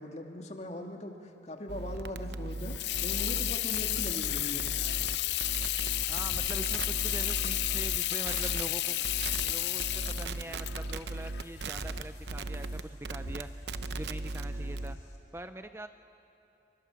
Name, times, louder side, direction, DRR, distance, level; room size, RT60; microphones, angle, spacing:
voice 1, 0.0-2.8 3.0-4.7, left 1 dB, 40° left, 3 dB, 2.1 m, -40 dB
sound 1, 1.7-8.0 8.3-8.6 9.1-9.5 9.8-15.0, right 2 dB, 65° right, 0.8 m, -37 dB
Water tap faucet / Sink (filling or washing), 2.5-12.1, left 15 dB, 70° left, 0.6 m, -32 dB
sound 2, 5.0-15.2, left 1 dB, 85° left, 3.8 m, -50 dB
voice 2, 6.1-9.0 9.4-15.0 15.3-15.9, right 1 dB, 15° right, 9 dB, 0.6 m, -43 dB
28.0 x 25.0 x 7.1 m, 2.8 s
head